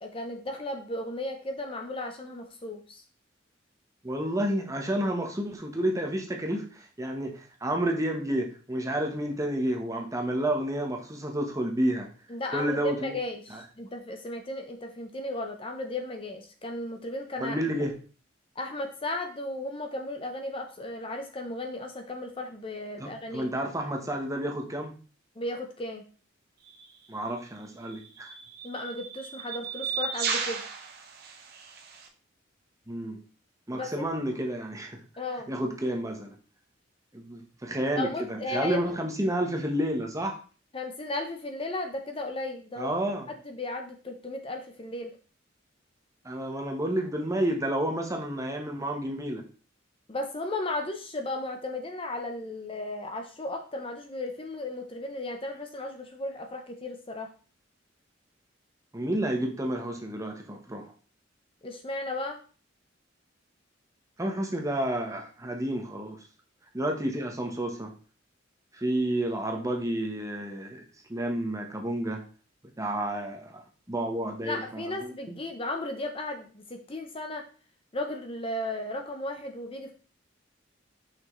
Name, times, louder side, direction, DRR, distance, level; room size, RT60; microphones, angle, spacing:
voice 1, 0.0-3.0 12.3-17.6 18.6-23.5 25.4-26.0 28.6-30.6 33.7-34.1 35.2-35.5 38.0-39.0 40.7-43.0 43.3-45.1 50.1-57.3 61.6-62.4 74.4-77.5 77.9-79.9, left 2 dB, 30° left, 5 dB, 0.8 m, -35 dB
voice 2, 4.0-12.1 12.5-13.2 13.5-13.6 17.4-17.9 23.0-24.9 27.1-28.3 32.9-33.2 33.7-35.0 35.5-36.4 37.1-40.4 42.8-43.3 46.2-49.4 58.9-60.9 64.2-66.2 66.7-67.9 68.7-72.2 72.8-75.3, right 1 dB, 15° right, 2 dB, 1.1 m, -30 dB
sound 1, 26.7-26.9 27.9-32.1, right 6 dB, 55° right, 1.0 m, -35 dB
5.9 x 5.8 x 3.1 m, 0.38 s
head